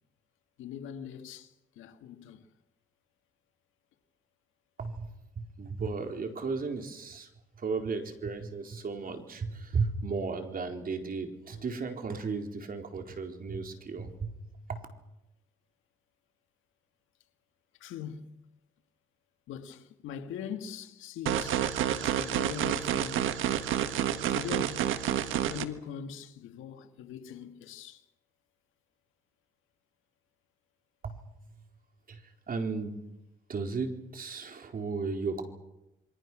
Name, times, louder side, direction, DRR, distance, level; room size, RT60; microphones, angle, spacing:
voice 1, 0.6-2.5 17.8-18.3 19.5-23.4 24.3-24.9 25.2-28.0, left 8 dB, 90° left, 2.0 m, -42 dB
voice 2, 4.8-7.3 7.6-14.3 14.7-14.8 31.0-31.2 32.1-33.0 33.5-35.4, right 4 dB, 45° right, 4.2 m, -35 dB
sound 1, 21.3-25.6, right 10 dB, 85° right, 1.6 m, -29 dB
27.5 x 23.5 x 6.2 m
cardioid pair, 90°, 20 cm